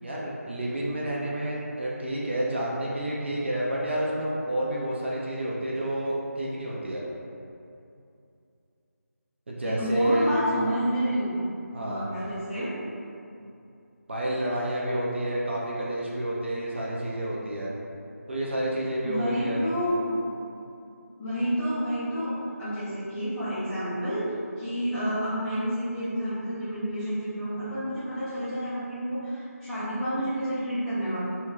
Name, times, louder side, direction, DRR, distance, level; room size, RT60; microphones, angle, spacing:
voice 1, 0.0-7.0 9.5-10.4 11.7-12.0 14.1-17.7 18.3-19.6, right 1 dB, 45° right, -5 dB, 0.4 m, -30 dB
voice 2, 9.6-11.4 11.8-12.7 19.0-20.2 21.2-24.2 24.6-31.2, equal, 5° left, -17 dB, 0.5 m, -29 dB
2.6 x 2.2 x 3.0 m, 2.6 s
figure-of-eight pair, 165°, 9 cm